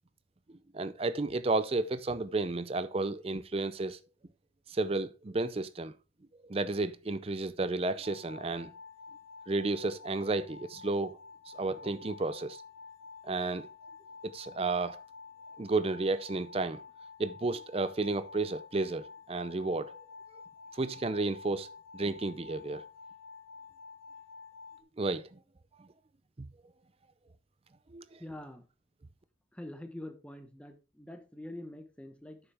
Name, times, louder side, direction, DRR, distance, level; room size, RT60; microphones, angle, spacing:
voice 1, 0.7-4.0 4.7-5.9 6.4-8.7 9.5-11.2 11.5-12.6 13.2-13.7 14.2-15.0 15.6-16.8 17.2-19.9 20.7-21.7 21.9-22.8 25.0-25.3 25.8-25.9 26.4-26.5 27.9-28.2, right 3 dB, 30° right, 0.5 m, -32 dB
sound 1, 8.0-24.8, left 4 dB, 80° left, 1.2 m, -50 dB
voice 2, 28.2-28.6 29.5-32.4, left 1 dB, 5° left, 0.9 m, -45 dB
9.0 x 7.0 x 3.4 m
head